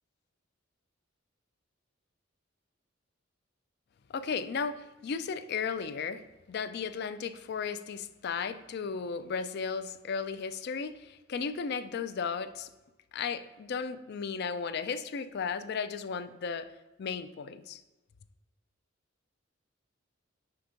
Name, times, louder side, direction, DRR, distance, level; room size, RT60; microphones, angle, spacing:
voice 1, 4.1-6.2 6.5-12.7 13.1-16.7 17.0-17.8, left 5 dB, 50° left, 0.4 m, -35 dB
5.8 x 3.4 x 5.0 m
head